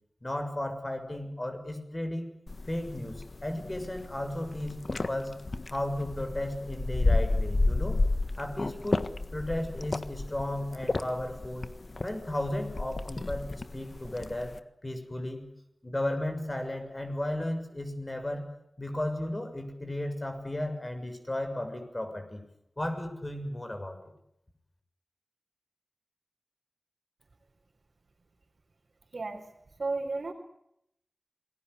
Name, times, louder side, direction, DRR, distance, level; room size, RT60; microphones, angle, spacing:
voice 1, 0.2-2.3 2.7-5.3 5.7-8.0 8.4-9.0 9.3-11.7 12.0-14.5 14.8-15.5 15.8-18.5 18.8-22.4 22.8-24.0, left 1 dB, 25° left, 6 dB, 6.7 m, -34 dB
sound 1, 2.5-14.6, left 2 dB, 50° left, 1.6 m, -32 dB
voice 2, 29.1-29.5 29.8-30.3, right 3 dB, 65° right, -1 dB, 4.2 m, -33 dB
28.5 x 21.0 x 8.3 m, 0.77 s
wide cardioid pair, 85°, 0 cm